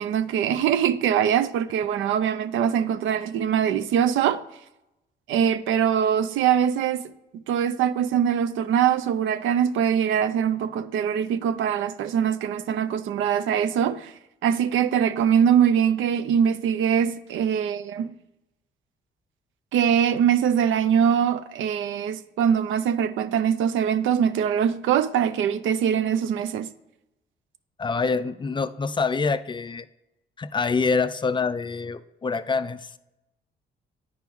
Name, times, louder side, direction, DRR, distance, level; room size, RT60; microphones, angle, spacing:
voice 1, 0.0-4.4 5.3-7.0 7.3-14.1 14.4-18.1 19.7-26.7, right 8 dB, 80° right, 0.5 m, -23 dB
voice 2, 27.8-29.9 30.4-32.9, left 4 dB, 25° left, 0.3 m, -26 dB
9.3 x 4.5 x 3.5 m
cardioid pair, 90°, 20 cm